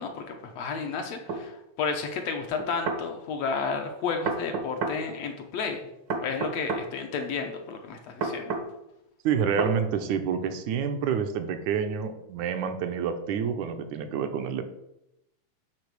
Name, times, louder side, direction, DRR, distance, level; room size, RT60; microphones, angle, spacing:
voice 1, 0.0-5.8 6.2-8.5, left 5 dB, 70° left, 4 dB, 1.8 m, -32 dB
sound 1, 1.3-1.4 2.6-3.0 4.2-5.0 6.1-6.9 8.2-8.7 9.6-9.8, right 4 dB, 65° right, 1.2 m, -29 dB
voice 2, 9.2-14.6, right 7 dB, 80° right, 7 dB, 2.1 m, -28 dB
10.0 x 3.7 x 6.7 m, 0.86 s
omnidirectional pair, 3.5 m